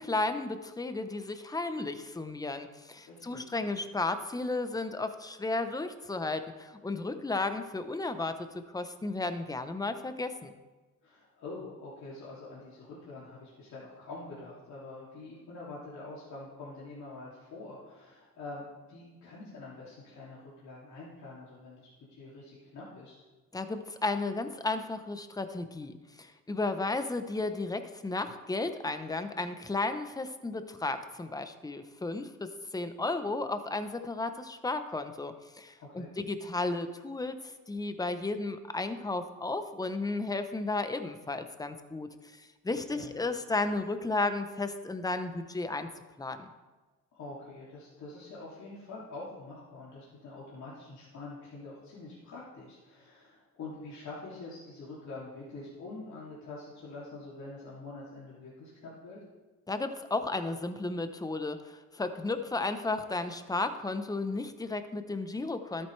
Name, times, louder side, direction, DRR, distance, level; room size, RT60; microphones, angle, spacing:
voice 1, 0.0-8.4 8.7-10.5 23.5-45.9 46.2-46.5 59.7-65.9, left 3 dB, 10° left, 9 dB, 0.8 m, -34 dB
voice 2, 3.1-3.4 11.0-23.1 35.8-36.2 42.9-43.1 47.1-59.2, left 3 dB, 70° left, -8 dB, 2.7 m, -45 dB
12.5 x 8.9 x 3.3 m, 1.2 s
cardioid pair, 90°, 30 cm